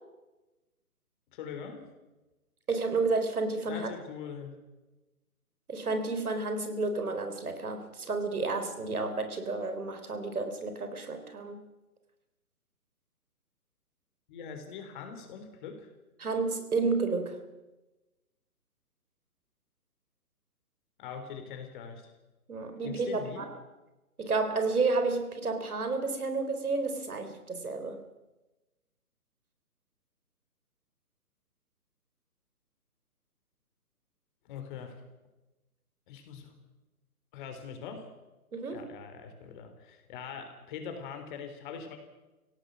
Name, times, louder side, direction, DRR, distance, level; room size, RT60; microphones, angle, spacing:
voice 1, 1.3-1.9 3.7-4.6 14.3-15.9 21.0-22.1 22.8-23.5 34.5-35.0 36.1-36.5 37.3-38.1 38.7-42.0, left 6 dB, 30° left, 6 dB, 3.7 m, -42 dB
voice 2, 2.7-3.9 5.7-11.6 16.2-17.4 22.5-23.6 24.2-28.0 38.5-38.9, right 3 dB, 70° right, 8 dB, 3.9 m, -31 dB
26.5 x 17.0 x 6.3 m, 1.1 s
figure-of-eight pair, 140°, 45 cm